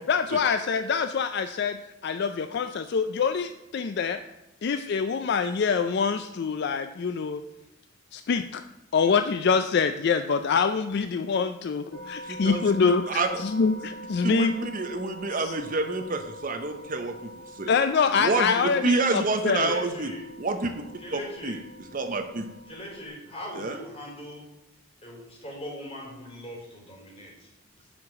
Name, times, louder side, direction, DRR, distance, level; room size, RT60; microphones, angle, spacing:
voice 1, 0.1-4.2 4.6-7.4 8.1-8.6 8.9-14.5 15.4-15.5 17.7-19.7, left 5 dB, 50° left, 9 dB, 0.3 m, -25 dB
sound 1, 11.9-23.1, equal, 85° left, 3.4 m, -45 dB
voice 2, 12.2-13.4 14.2-17.1 17.5-17.7 18.2-20.1 20.4-20.7 21.1-21.6 21.9-22.4 23.6-23.8, right 3 dB, 40° right, 6 dB, 0.7 m, -28 dB
voice 3, 19.5-20.2 21.0-21.6 22.7-24.5 25.0-27.5, equal, 25° left, -2 dB, 3.0 m, -40 dB
8.2 x 4.9 x 7.1 m, 0.96 s
head